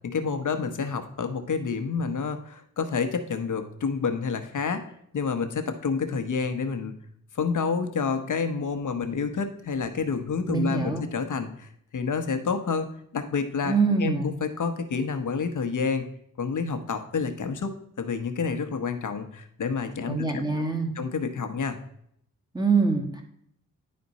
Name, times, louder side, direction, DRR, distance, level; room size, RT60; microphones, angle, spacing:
voice 1, 0.1-4.8 5.1-7.0 7.3-13.7 14.0-16.1 16.4-20.4 20.9-21.8, left 5 dB, 65° left, 8 dB, 1.0 m, -29 dB
voice 2, 10.5-11.0 13.6-14.3 20.1-20.9 22.5-23.2, right 4 dB, 10° right, 2 dB, 1.8 m, -24 dB
10.5 x 4.3 x 4.1 m, 0.69 s
cardioid pair, 70°, 33 cm